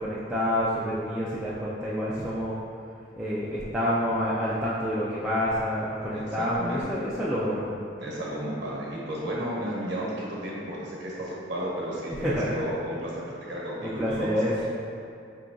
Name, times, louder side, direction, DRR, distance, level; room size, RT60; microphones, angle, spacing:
voice 1, 0.0-2.6 3.2-7.6 12.1-12.5 13.8-14.7, equal, 5° right, -10 dB, 0.3 m, -28 dB
voice 2, 6.1-6.9 8.0-14.4, right 1 dB, 65° right, -5 dB, 1.0 m, -33 dB
4.5 x 2.9 x 2.5 m, 2.4 s
head